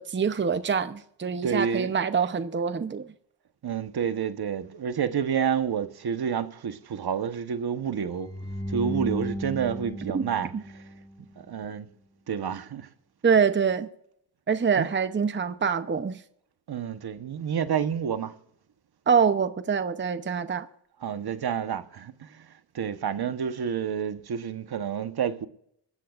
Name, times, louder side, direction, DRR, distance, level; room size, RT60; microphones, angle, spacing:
voice 1, 0.0-3.1 10.1-10.3 10.5-10.6 13.2-13.9 14.5-16.2 19.1-20.7, right 6 dB, 25° right, 0.8 m, -25 dB
voice 2, 1.4-1.9 3.6-8.3 8.7-10.8 11.4-11.9 12.3-12.9 14.8-14.9 16.7-18.3 21.0-22.5 22.7-25.5, right 7 dB, 60° right, 1.2 m, -29 dB
sound 1, 8.1-11.3, equal, 10° left, 1.8 m, -35 dB
25.5 x 13.5 x 2.5 m
cardioid pair, 85°, 44 cm